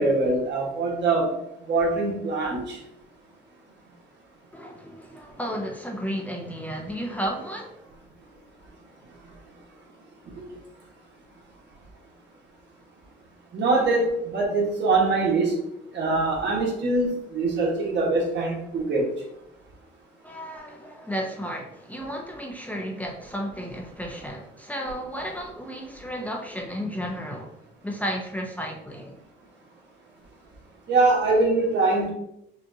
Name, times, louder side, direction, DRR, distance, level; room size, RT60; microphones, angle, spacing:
voice 1, 0.0-1.3 1.7-2.8 13.5-15.6 15.9-19.1 30.9-32.1, right 3 dB, 60° right, -2 dB, 1.4 m, -23 dB
voice 2, 4.5-7.8 20.2-27.5 27.8-29.2, equal, 5° left, 0 dB, 0.7 m, -33 dB
5.4 x 2.4 x 2.8 m, 0.80 s
cardioid pair, 90°, 20 cm